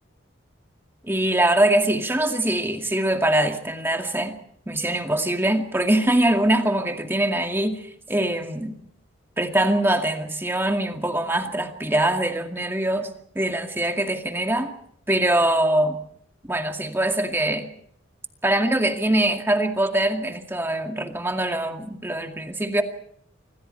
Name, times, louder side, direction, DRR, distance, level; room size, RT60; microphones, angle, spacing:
voice 1, 1.0-4.4 4.7-8.8 9.4-14.7 15.1-16.0 16.5-17.7 18.4-22.8, right 1 dB, 10° right, 2.1 m, -23 dB
26.0 x 25.5 x 4.5 m
head